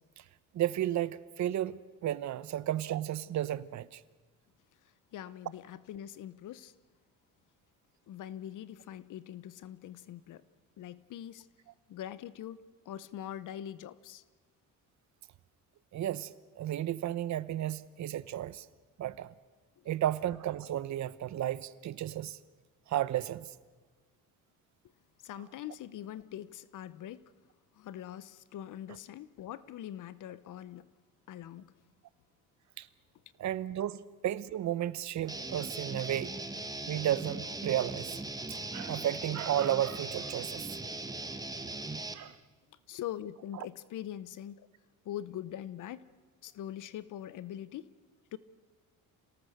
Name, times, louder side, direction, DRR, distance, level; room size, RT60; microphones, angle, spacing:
voice 1, 0.5-4.0 15.9-18.7 19.0-19.3 19.9-22.4 22.9-23.5 32.8-32.9 33.4-36.3 36.9-38.2 38.5-40.8 42.1-42.4 43.6-43.7, right 12 dB, 60° right, 0.9 m, -33 dB
voice 2, 5.1-6.7 8.1-10.4 10.8-11.5 11.9-14.2 25.2-27.2 27.7-30.9 31.3-31.7 42.9-44.7 45.0-46.1 46.4-47.9 48.3-48.4, left 11 dB, 65° left, 0.9 m, -43 dB
Guitar, 35.3-42.1, right 2 dB, 10° right, 1.5 m, -39 dB
27.5 x 18.5 x 6.6 m
cardioid pair, 100°, 33 cm